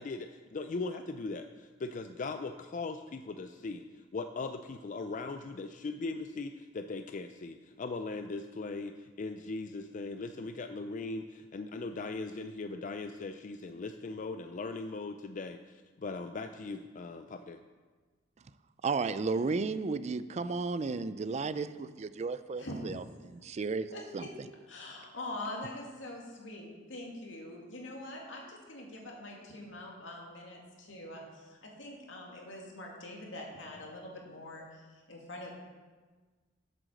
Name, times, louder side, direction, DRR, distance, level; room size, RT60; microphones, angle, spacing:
voice 1, 0.0-3.8 4.1-17.6, left 3 dB, 45° left, 7 dB, 0.4 m, -39 dB
voice 2, 18.8-24.2, right 4 dB, 35° right, 13 dB, 0.4 m, -34 dB
voice 3, 22.5-23.0 23.9-24.3 24.7-35.6, left 1 dB, 80° left, -1 dB, 2.2 m, -44 dB
7.8 x 7.7 x 6.5 m, 1.4 s
head